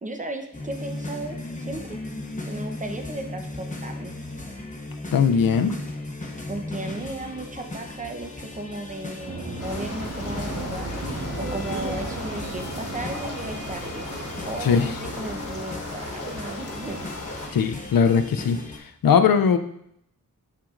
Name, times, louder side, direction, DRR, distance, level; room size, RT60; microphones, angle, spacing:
voice 1, 0.0-2.0 2.4-4.1 6.5-10.9 11.4-14.1 14.5-17.0, right 2 dB, 25° right, 4 dB, 0.8 m, -35 dB
sound 1, 0.5-18.8, left 2 dB, 20° left, 0.9 m, -37 dB
voice 2, 5.1-5.7 14.6-14.9 17.5-18.6 19.0-19.6, left 6 dB, 85° left, 10 dB, 0.5 m, -19 dB
sound 2, 9.2-15.5, right 3 dB, 65° right, 1.5 m, -36 dB
sound 3, 9.6-17.5, left 2 dB, 45° left, 1.2 m, -36 dB
6.7 x 5.8 x 2.5 m, 0.74 s
wide cardioid pair, 75°, 34 cm